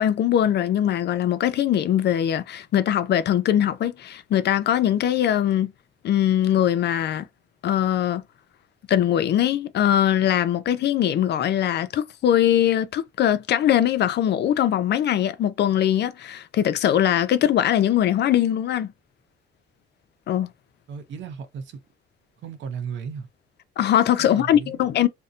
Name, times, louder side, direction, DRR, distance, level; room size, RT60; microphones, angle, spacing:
voice 1, 0.0-5.7 6.0-7.3 7.6-8.2 8.9-18.9 20.3-20.5 23.8-25.1, left 10 dB, 60° left, 0.4 m, -21 dB
voice 2, 20.9-21.8 22.4-23.3 24.2-24.8, right 6 dB, 70° right, 0.6 m, -35 dB
2.6 x 2.1 x 2.4 m
cardioid pair, 90°, 20 cm